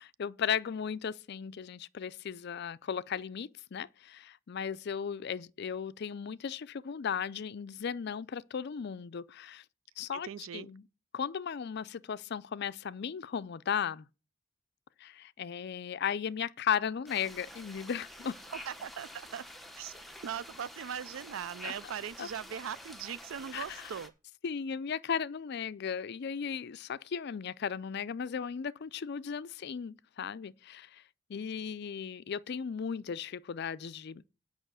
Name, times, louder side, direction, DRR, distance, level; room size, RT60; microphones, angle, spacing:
voice 1, 0.0-9.6 10.0-10.8 11.1-14.1 15.0-18.4 21.6-21.7 22.2-22.3 23.5-23.9 24.4-31.0 31.3-34.2, left 7 dB, 55° left, 0.4 m, -36 dB
voice 2, 10.1-10.7 18.5-19.5 19.8-19.9 20.2-24.1, right 8 dB, 80° right, 0.4 m, -40 dB
sound 1, 17.1-24.1, left 1 dB, ahead, 1.2 m, -49 dB
8.8 x 5.5 x 7.7 m
head